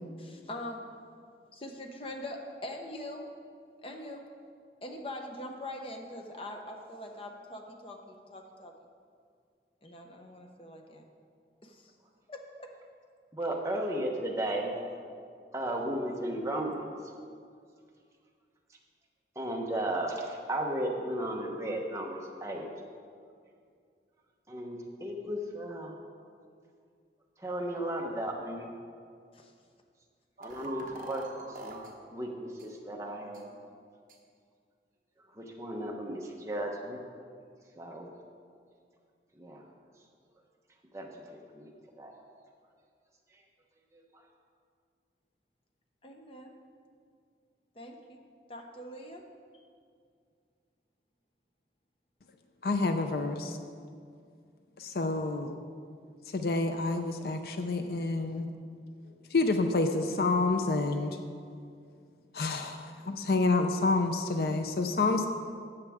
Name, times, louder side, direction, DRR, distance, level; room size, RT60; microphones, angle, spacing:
voice 1, 0.2-0.8 1.5-3.3 3.8-4.2 4.8-8.7 9.8-11.0 11.6-11.9 12.3-12.7 29.3-29.5 46.0-46.6 47.7-48.2 48.5-49.2, left 1 dB, 30° left, 3 dB, 0.9 m, -43 dB
voice 2, 13.3-14.7 15.5-16.9 19.3-22.7 24.5-25.9 27.4-28.7 30.4-31.8 32.1-33.5 35.3-37.0 37.8-38.1 39.3-39.6 40.9-42.1 43.9-44.0, right 1 dB, 15° right, 0 dB, 1.0 m, -35 dB
sound 1, 30.4-31.9 32.6-32.7 33.3-33.4 34.1-34.2, right 2 dB, 45° right, 1.2 m, -43 dB
voice 3, 52.6-53.6 54.8-55.6 56.3-58.5 59.3-61.2 62.3-65.3, left 3 dB, 55° left, 6 dB, 0.5 m, -28 dB
13.5 x 8.2 x 3.6 m, 2.2 s
head